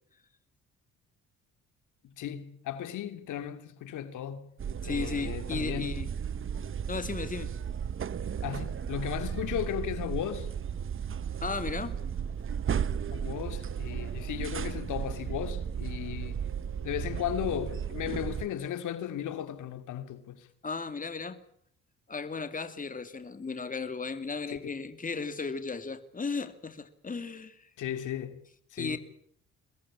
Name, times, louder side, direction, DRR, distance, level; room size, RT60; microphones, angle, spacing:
voice 1, 2.0-4.5 4.9-6.1 8.4-10.5 13.1-16.4 16.8-20.5 24.5-24.6 27.8-28.4 28.7-29.0, left 10 dB, 80° left, 2.6 m, -35 dB
sound 1, 4.6-18.5, right 8 dB, 45° right, 1.1 m, -35 dB
voice 2, 4.8-6.1 6.9-7.5 11.4-11.9 20.6-21.4 22.1-27.7 28.8-29.0, left 4 dB, 25° left, 2.5 m, -35 dB
24.0 x 20.5 x 8.6 m
cardioid pair, 90°, 30 cm